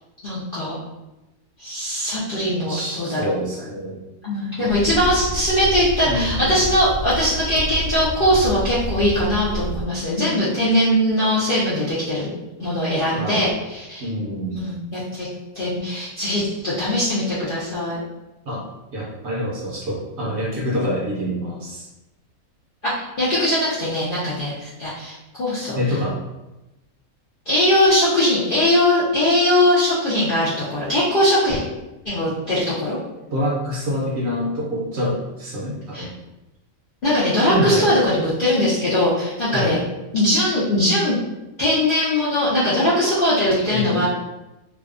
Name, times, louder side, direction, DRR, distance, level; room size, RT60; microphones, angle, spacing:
voice 1, 0.2-0.8 1.6-3.4 4.2-12.3 12.6-14.1 14.5-15.3 15.5-18.0 22.8-25.8 27.5-31.6 32.1-33.0 35.9-36.1 37.0-39.8 40.1-41.1 41.6-44.1, left 1 dB, 60° left, -9 dB, 0.5 m, -20 dB
voice 2, 2.7-4.0 4.6-4.8 6.1-6.6 10.2-10.4 13.0-13.5 14.0-14.6 18.5-18.6 18.9-21.9 25.8-26.2 33.3-36.1 37.5-37.9 39.5-39.8 43.7-44.1, equal, 60° right, -5 dB, 0.7 m, -26 dB
sound 1, 4.7-9.8, right 2 dB, 75° left, 1.0 m, -29 dB
2.6 x 2.1 x 2.4 m, 1.0 s
omnidirectional pair, 1.5 m